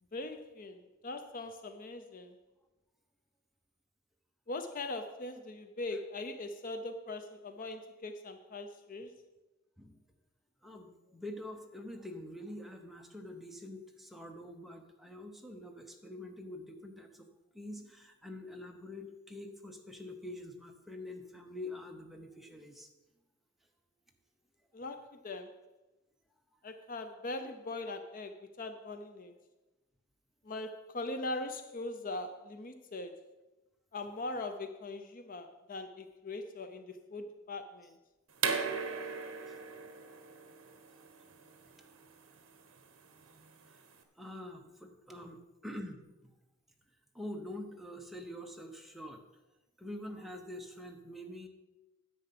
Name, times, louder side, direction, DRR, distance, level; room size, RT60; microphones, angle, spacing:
voice 1, 0.1-2.4 4.5-9.2 24.7-25.6 26.6-29.3 30.4-33.2 33.9-38.0, left 2 dB, 40° left, 8 dB, 0.6 m, -41 dB
voice 2, 10.6-17.3 17.5-22.9 39.0-39.1 39.5-39.6 41.8-41.9 43.7-43.8 44.2-46.3 47.1-49.2 49.8-51.5, left 1 dB, ahead, 2 dB, 0.9 m, -45 dB
sound 1, 38.4-44.0, right 5 dB, 60° right, 1.2 m, -38 dB
10.0 x 8.0 x 5.9 m, 1.1 s
head